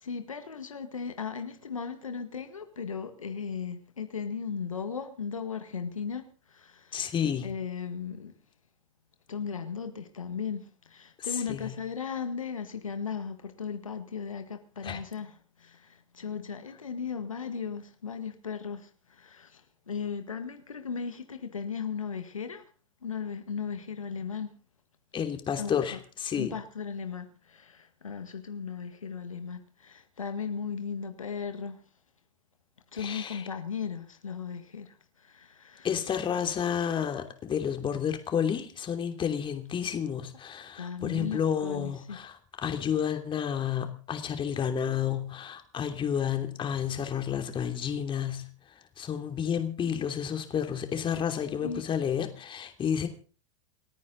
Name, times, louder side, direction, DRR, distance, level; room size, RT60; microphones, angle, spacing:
voice 1, 0.0-7.1 7.4-8.3 9.3-22.6 23.0-24.5 25.6-26.0 26.4-31.8 32.9-35.9 40.8-42.2 51.6-51.9, left 6 dB, 85° left, 1.8 m, -37 dB
voice 2, 6.9-7.5 11.2-11.7 14.8-15.0 25.1-26.5 32.9-33.4 35.8-48.5 49.0-53.1, left 8 dB, 30° left, 3.0 m, -31 dB
29.0 x 9.8 x 4.0 m
hypercardioid pair, 85°, 17 cm